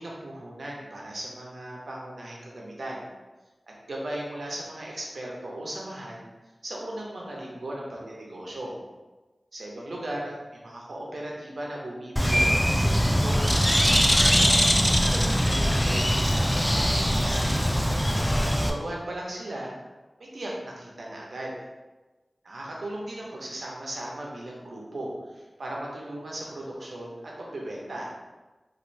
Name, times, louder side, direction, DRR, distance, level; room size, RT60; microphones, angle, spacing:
voice 1, 0.0-3.1 3.9-6.3 6.6-8.8 9.5-17.5 18.2-19.7 20.2-21.5 22.4-28.1, right 1 dB, 85° right, -3 dB, 0.6 m, -37 dB
Bird, 12.2-18.7, equal, 10° left, 0.3 m, -22 dB
2.5 x 2.5 x 3.1 m, 1.2 s
wide cardioid pair, 45°, 0 cm